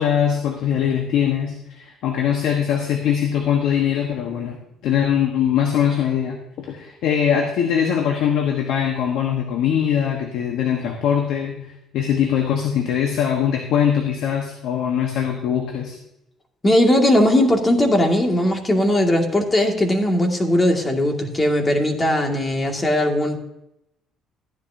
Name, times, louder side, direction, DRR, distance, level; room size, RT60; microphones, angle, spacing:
voice 1, 0.0-4.6 4.8-16.0, left 8 dB, 75° left, 3 dB, 1.3 m, -22 dB
voice 2, 16.6-23.4, left 1 dB, 25° left, 2 dB, 2.2 m, -18 dB
14.0 x 10.5 x 2.8 m, 0.85 s
supercardioid pair, 80°, 0 cm